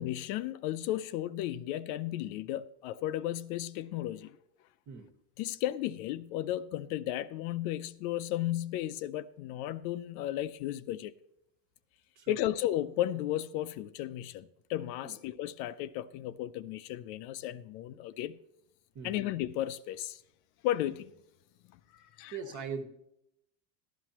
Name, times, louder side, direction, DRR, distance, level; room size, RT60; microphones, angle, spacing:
voice 1, 0.0-4.4 5.4-11.1 12.3-18.4 19.0-20.2 20.6-21.1 22.2-22.4, left 13 dB, 65° left, 0.7 m, -34 dB
voice 2, 22.3-22.9, right 5 dB, 35° right, 1.4 m, -40 dB
12.5 x 12.0 x 2.9 m
supercardioid pair, 135°, 50 cm